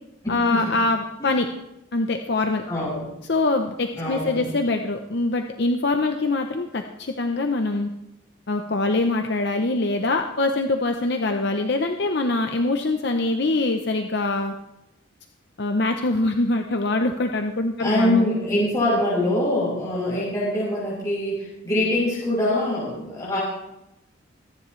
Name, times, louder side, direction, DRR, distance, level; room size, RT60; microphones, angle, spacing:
voice 1, 0.3-1.5 1.9-2.6 3.3-7.9 8.5-14.5 15.6-18.3 18.5-18.6, left 2 dB, 55° left, 5 dB, 0.7 m, -24 dB
voice 2, 2.7-3.0 4.0-4.4 17.8-23.4, left 1 dB, 15° left, -8 dB, 5.8 m, -24 dB
25.0 x 10.0 x 3.2 m, 0.88 s
head